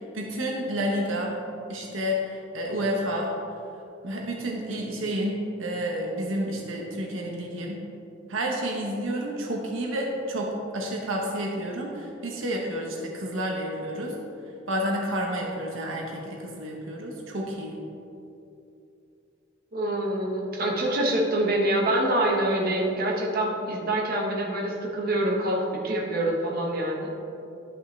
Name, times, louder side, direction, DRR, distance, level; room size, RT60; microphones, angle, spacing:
voice 1, 0.0-1.4 1.7-3.3 4.0-7.8 8.3-14.2 14.7-17.8, equal, 85° right, 0 dB, 1.1 m, -30 dB
voice 2, 19.7-27.1, right 1 dB, 50° right, -1 dB, 1.2 m, -26 dB
12.0 x 5.6 x 3.3 m, 2.8 s
head